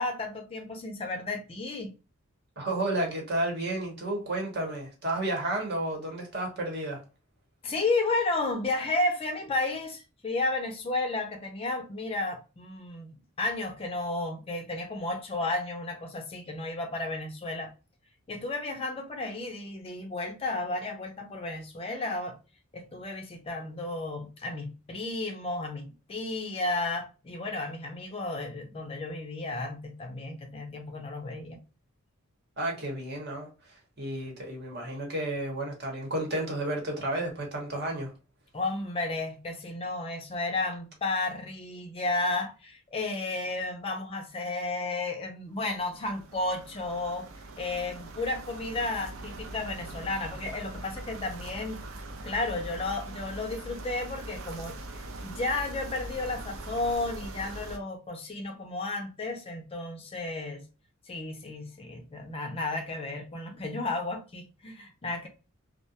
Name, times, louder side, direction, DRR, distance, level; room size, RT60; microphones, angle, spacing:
voice 1, 0.0-1.9 7.6-17.7 18.3-22.4 22.7-31.6 38.5-47.3 47.6-51.8 52.2-60.6 61.1-65.3, left 2 dB, 30° left, 0.4 m, -33 dB
voice 2, 2.6-7.0 32.6-33.5 34.0-38.1, right 1 dB, 50° right, 1.0 m, -32 dB
sound 1, 45.6-57.8, right 2 dB, 75° right, 0.5 m, -42 dB
2.4 x 2.2 x 2.7 m
head